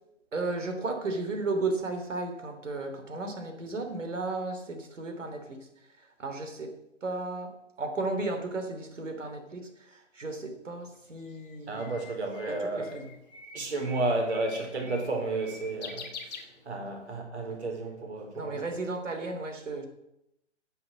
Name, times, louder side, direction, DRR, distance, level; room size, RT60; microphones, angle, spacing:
voice 1, 0.3-5.7 6.0-6.7 7.0-12.0 12.5-13.1 17.5-17.6 18.3-19.9, right 3 dB, 85° right, 3.3 m, -34 dB
Bird, 10.9-17.1, left 4 dB, 35° left, 1.7 m, -46 dB
voice 2, 11.7-12.9 13.5-18.6, right 2 dB, 65° right, 4.6 m, -32 dB
11.0 x 7.9 x 7.5 m
hypercardioid pair, 170°, 36 cm